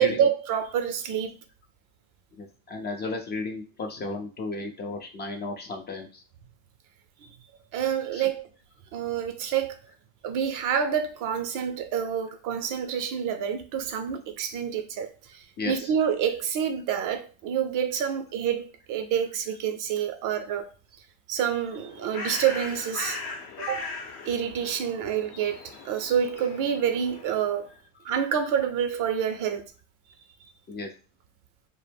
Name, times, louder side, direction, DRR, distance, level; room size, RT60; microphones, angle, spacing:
voice 1, 0.0-1.3 7.7-8.4 8.9-9.8 10.2-20.7 21.3-23.2 23.6-23.9 24.2-27.7 28.0-29.6, right 8 dB, 50° right, 0.5 m, -27 dB
voice 2, 2.4-6.2 8.1-8.3 15.6-15.9 30.7-30.9, left 3 dB, 25° left, 0.4 m, -34 dB
Bird, 21.6-27.7, left 3 dB, 50° left, 0.8 m, -39 dB
2.1 x 2.0 x 3.3 m
hypercardioid pair, 90°, 41 cm